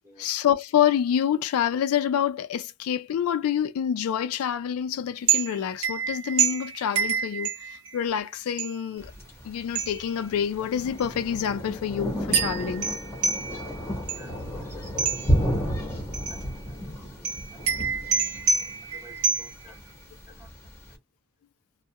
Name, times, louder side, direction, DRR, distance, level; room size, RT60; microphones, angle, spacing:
voice 1, 0.2-9.1 9.4-12.9 14.3-14.4, left 9 dB, 75° left, 0.3 m, -27 dB
sound 1, 5.3-8.1 8.6-9.0 9.8-10.3 11.0-11.1 12.3-14.5 15.0-15.5 16.1-16.6 17.2-19.8, right 6 dB, 70° right, 0.7 m, -28 dB
Thunder, 9.0-20.9, equal, 10° left, 0.7 m, -32 dB
voice 2, 13.7-15.2 16.3-17.7 18.5-20.5 20.8-21.0, equal, 10° right, 0.9 m, -54 dB
2.3 x 2.0 x 2.7 m
head